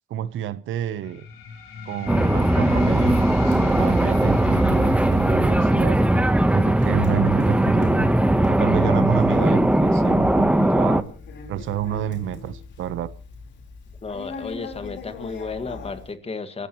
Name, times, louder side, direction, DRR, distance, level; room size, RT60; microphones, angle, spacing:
voice 1, 0.1-1.3 1.8-3.2 3.4-6.0 6.5-8.1 8.5-11.1 11.5-13.1, right 11 dB, 80° right, 1.0 m, -29 dB
sound 1, 1.0-12.1, left 5 dB, 90° left, 4.3 m, -38 dB
sound 2, 2.1-11.0, right 1 dB, 5° right, 1.1 m, -19 dB
Conversation, 2.9-16.1, left 4 dB, 70° left, 4.1 m, -40 dB
voice 2, 14.0-16.7, left 4 dB, 30° left, 2.0 m, -33 dB
28.0 x 15.0 x 3.1 m
cardioid pair, 90°, 20 cm